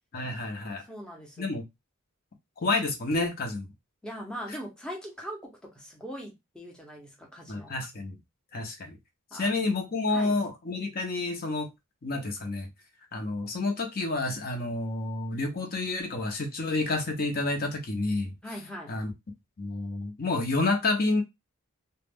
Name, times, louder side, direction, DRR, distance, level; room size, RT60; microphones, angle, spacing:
voice 1, 0.1-0.8 1.4-1.6 2.6-3.7 7.5-8.2 8.5-9.0 9.3-11.7 12.0-12.7 13.1-18.3 18.9-19.1 19.6-21.2, left 2 dB, 45° left, 0.6 m, -29 dB
voice 2, 0.9-1.5 4.0-7.7 9.3-9.7 10.1-10.4 18.4-19.0, equal, 5° left, 0.6 m, -41 dB
2.3 x 2.1 x 3.4 m
head